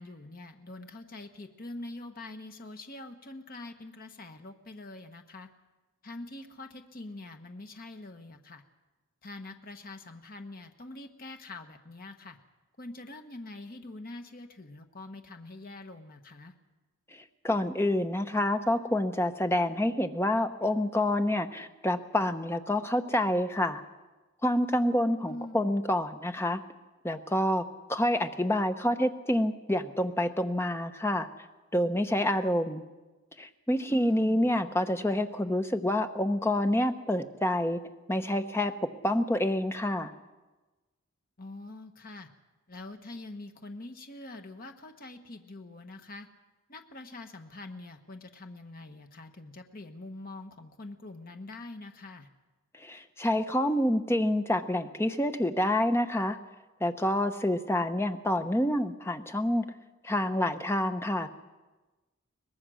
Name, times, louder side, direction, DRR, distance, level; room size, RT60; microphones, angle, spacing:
voice 1, 0.0-5.5 6.0-8.6 9.2-12.4 12.8-16.5 25.3-25.7 33.9-34.5 41.4-42.3 42.7-46.3 46.7-52.3, left 2 dB, 40° left, 6 dB, 1.3 m, -44 dB
voice 2, 17.1-23.8 24.4-26.6 27.0-27.6 27.9-31.3 31.7-32.8 33.4-37.8 38.1-40.1 52.8-56.4 56.8-59.7 60.0-61.4, left 1 dB, 10° left, 7 dB, 0.9 m, -28 dB
23.0 x 20.0 x 6.3 m, 1.2 s
head